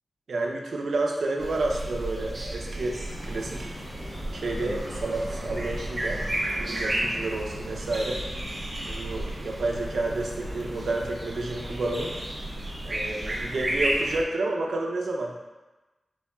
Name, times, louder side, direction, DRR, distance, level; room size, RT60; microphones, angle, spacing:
voice 1, 0.3-3.0 3.2-3.7 4.3-6.2 6.6-8.2 8.8-12.1 12.8-15.3, right 2 dB, 80° right, 0 dB, 0.6 m, -30 dB
sound 1, 1.4-14.2, right 1 dB, 30° right, 0.6 m, -33 dB
sound 2, 3.0-13.8, left 1 dB, 75° left, 0.7 m, -41 dB
4.5 x 4.2 x 2.3 m, 1.1 s
wide cardioid pair, 125°, 0 cm